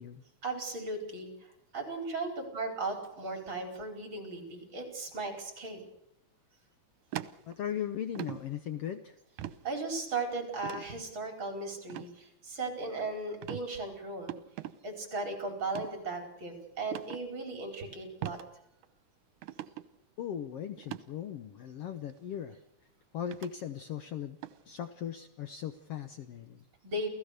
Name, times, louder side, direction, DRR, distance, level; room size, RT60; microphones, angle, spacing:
voice 1, 0.4-5.8 9.6-14.3 14.8-18.4 26.8-27.1, right 3 dB, 40° right, 5 dB, 5.3 m, -37 dB
sound 1, 7.1-7.8 8.2-8.4 9.4-9.6 10.6-10.9 11.9-12.1 12.6-13.0 13.4-13.7 14.3-14.7 15.6-15.9 16.9-17.2 18.2-18.5 18.8-18.9 19.4-19.9 20.8-21.0 22.1-22.2 23.3-23.5 24.4-24.6, right 13 dB, 80° right, 2.4 m, -40 dB
voice 2, 7.5-9.2 20.2-22.6 23.1-24.4 24.6-26.6, left 9 dB, 65° left, 10 dB, 1.7 m, -38 dB
29.0 x 16.5 x 6.7 m, 0.82 s
omnidirectional pair, 3.5 m